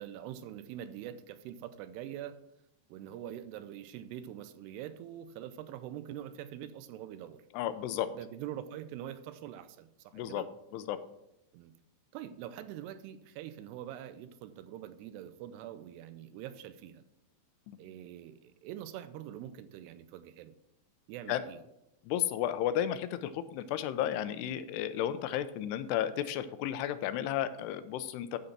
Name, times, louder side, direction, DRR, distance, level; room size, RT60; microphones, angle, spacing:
voice 1, 0.0-2.4 2.9-7.4 8.1-10.5 11.5-11.7 12.1-17.0 17.8-20.6 21.1-21.6, right 11 dB, 85° right, 12 dB, 2.6 m, -44 dB
voice 2, 7.5-8.1 10.1-10.4 10.7-11.0 17.7-17.8 21.3-21.4 22.1-28.4, left 11 dB, 85° left, 12 dB, 2.7 m, -33 dB
11.5 x 4.0 x 6.6 m, 0.83 s
omnidirectional pair, 4.8 m